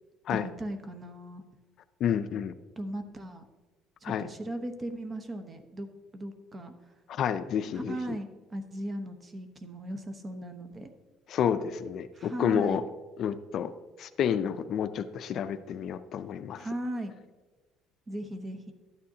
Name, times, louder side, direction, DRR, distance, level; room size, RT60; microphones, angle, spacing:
voice 1, 0.3-1.4 2.8-3.4 4.0-5.9 6.1-6.7 7.7-10.9 12.1-12.8 16.6-17.1 18.1-18.7, right 1 dB, 25° right, 8 dB, 0.9 m, -37 dB
voice 2, 2.0-2.5 4.0-4.3 7.1-8.2 11.3-12.8 13.2-13.7 14.0-16.7, left 8 dB, 55° left, 12 dB, 0.4 m, -30 dB
12.0 x 9.0 x 2.8 m, 1.2 s
cardioid pair, 130°, 0 cm